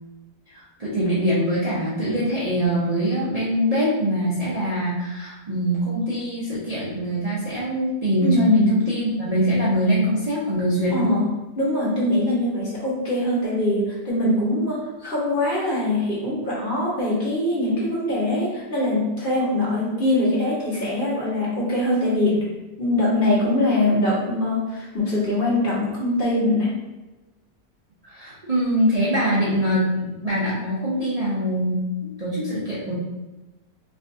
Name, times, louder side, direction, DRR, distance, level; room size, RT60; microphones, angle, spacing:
voice 1, 0.5-11.2 28.0-32.9, equal, 75° right, -9 dB, 0.3 m, -23 dB
voice 2, 8.2-8.6 10.9-11.3 11.6-22.4 22.8-26.8, left 1 dB, 35° left, -8 dB, 1.3 m, -22 dB
4.5 x 2.7 x 2.6 m, 1.1 s
omnidirectional pair, 1.7 m